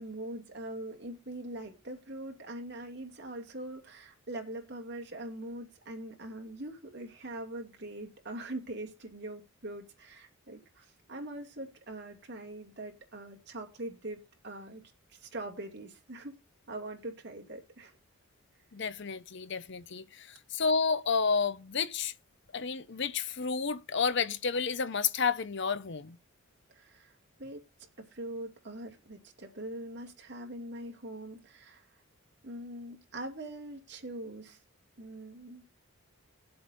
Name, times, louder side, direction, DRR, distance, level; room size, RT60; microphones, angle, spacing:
voice 1, 0.0-14.8 15.1-16.3 16.7-17.9 26.7-27.6 28.0-31.9 32.4-34.6 35.0-35.6, right 1 dB, 55° right, 2.6 m, -42 dB
voice 2, 18.7-22.1 22.5-26.2, left 5 dB, 55° left, 0.7 m, -31 dB
20.5 x 7.8 x 2.7 m
head